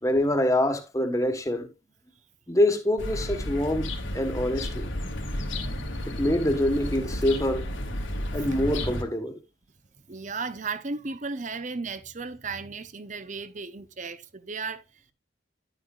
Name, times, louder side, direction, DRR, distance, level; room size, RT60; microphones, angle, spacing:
voice 1, 0.0-1.7 2.5-4.9 6.1-7.7 8.3-9.4, left 1 dB, 15° left, 1.4 m, -25 dB
sound 1, 3.0-9.0, left 1 dB, 85° left, 2.5 m, -32 dB
voice 2, 10.1-14.8, right 4 dB, 40° right, 0.7 m, -35 dB
11.0 x 9.0 x 2.4 m
head